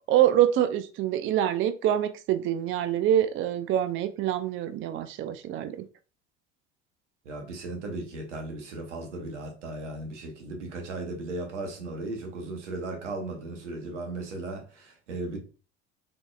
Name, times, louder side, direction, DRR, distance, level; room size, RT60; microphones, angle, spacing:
voice 1, 0.1-5.9, right 11 dB, 35° right, 0.4 m, -25 dB
voice 2, 7.2-15.4, right 2 dB, 90° right, 1.0 m, -36 dB
3.7 x 3.4 x 2.3 m
hypercardioid pair, 75°, 35 cm